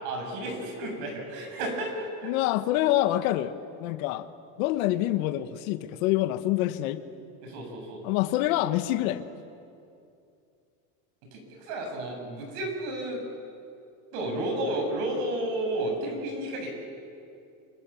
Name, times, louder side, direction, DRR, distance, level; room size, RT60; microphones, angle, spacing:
voice 1, 0.0-2.3 7.4-8.0 11.3-13.2 14.1-16.7, right 1 dB, 70° right, 2 dB, 8.0 m, -32 dB
voice 2, 2.2-4.3 4.6-7.0 8.0-9.2, left 14 dB, 80° left, 10 dB, 1.5 m, -26 dB
28.5 x 25.0 x 7.2 m, 2.6 s
cardioid pair, 165°, 40 cm